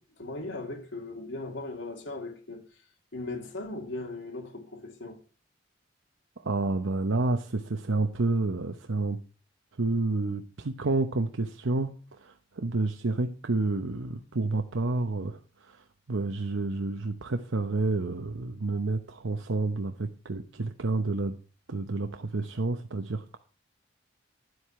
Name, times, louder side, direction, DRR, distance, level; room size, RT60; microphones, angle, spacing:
voice 1, 0.0-2.6 3.1-5.2, left 2 dB, 70° left, 2.3 m, -38 dB
voice 2, 6.4-9.2 9.8-11.9 12.2-21.4 21.7-23.4, right 3 dB, 80° right, 0.9 m, -29 dB
10.5 x 7.9 x 5.8 m
head